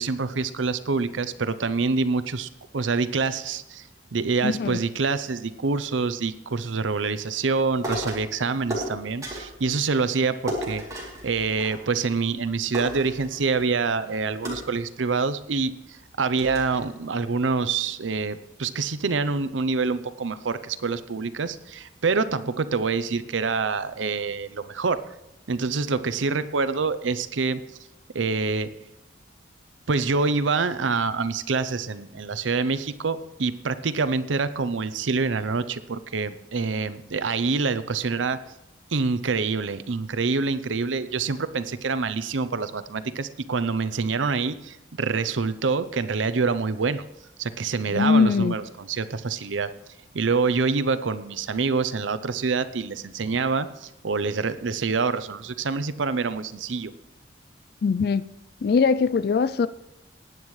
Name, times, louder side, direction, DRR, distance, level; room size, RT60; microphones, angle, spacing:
voice 1, 0.0-10.8 11.2-25.0 25.5-27.6 28.1-28.7 29.9-38.4 38.9-47.0 47.4-49.7 50.1-56.9, right 4 dB, 85° right, 14 dB, 0.7 m, -26 dB
voice 2, 4.4-4.8 47.9-48.5 57.8-58.2 58.6-59.7, left 5 dB, 55° left, 14 dB, 0.3 m, -21 dB
throwing can, 7.8-8.3 8.7-9.6 10.5-12.1 12.4-12.5 12.7-13.7 14.4-15.4 15.9-16.0 16.4-16.8, equal, 20° right, 2.9 m, -34 dB
19.5 x 9.3 x 3.2 m, 0.88 s
head